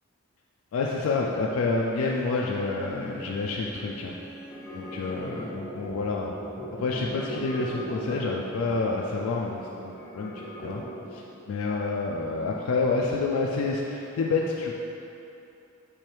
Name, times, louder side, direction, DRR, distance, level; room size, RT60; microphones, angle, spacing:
voice 1, 0.7-4.2 4.7-6.3 6.8-10.3 10.6-10.8 11.1-14.7, left 3 dB, 80° left, -2 dB, 0.3 m, -28 dB
Bowed string instrument, 2.1-5.9, right 2 dB, 45° right, 0.4 m, -46 dB
sound 1, 4.5-11.2, equal, 10° left, 0.7 m, -39 dB
4.5 x 3.4 x 3.3 m, 2.9 s
head